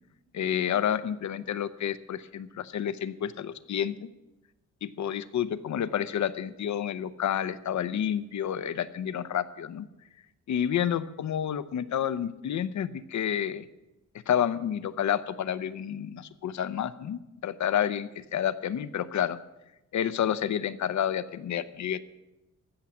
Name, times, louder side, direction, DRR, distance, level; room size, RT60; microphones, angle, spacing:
voice 1, 0.3-4.1 4.8-9.9 10.5-13.7 14.3-19.4 19.9-22.0, left 9 dB, 65° left, 15 dB, 0.7 m, -29 dB
14.5 x 7.1 x 8.9 m, 0.97 s
wide cardioid pair, 130°, 31 cm